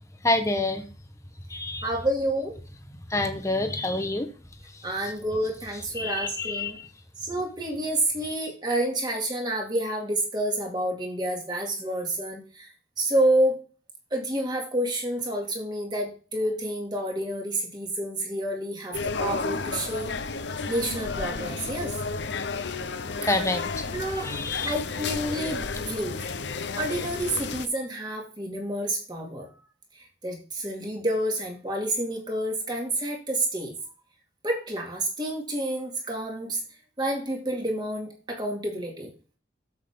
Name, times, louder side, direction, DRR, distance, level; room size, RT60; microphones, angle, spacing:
voice 1, 0.2-0.8 1.5-1.9 3.1-4.3 4.7-5.1 5.9-6.9 8.2-8.3 23.2-24.7, left 2 dB, 15° left, 6 dB, 1.1 m, -28 dB
voice 2, 1.8-2.6 4.8-6.8 7.2-12.7 13.0-13.6 14.1-20.1 20.7-21.9 23.2-23.3 23.9-24.3 24.6-26.2 26.8-29.5 30.2-33.7 34.4-36.6 37.0-39.1, right 1 dB, 25° right, 1 dB, 2.2 m, -29 dB
sound 1, 18.9-27.7, left 4 dB, 75° left, 0.8 m, -32 dB
7.8 x 7.5 x 3.6 m, 0.36 s
head